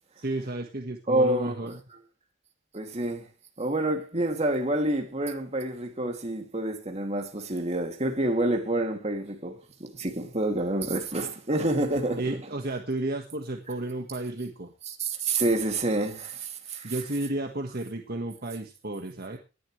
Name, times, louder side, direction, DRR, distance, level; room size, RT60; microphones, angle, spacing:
voice 1, 0.2-1.7 12.2-14.7 16.8-19.4, right 2 dB, 50° right, 1.6 m, -32 dB
voice 2, 1.1-1.8 2.7-3.2 3.6-12.4 15.0-16.9, right 1 dB, 35° right, 2.6 m, -28 dB
19.0 x 11.5 x 3.3 m
head